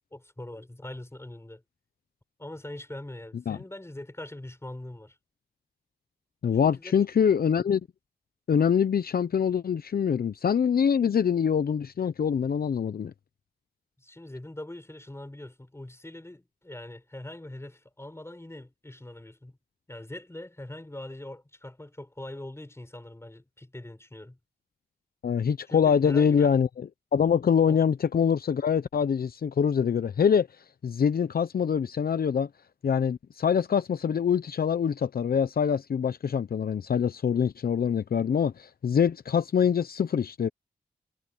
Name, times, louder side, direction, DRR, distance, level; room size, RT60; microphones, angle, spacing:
voice 1, 0.1-1.6 2.4-5.2 6.6-6.9 14.0-19.6 19.9-24.4 25.7-26.5 27.7-27.8, left 1 dB, 15° left, 5.1 m, -42 dB
voice 2, 6.4-7.8 8.5-13.1 25.2-32.5 32.8-40.5, left 7 dB, 65° left, 0.8 m, -24 dB
cardioid pair, 55°, 17 cm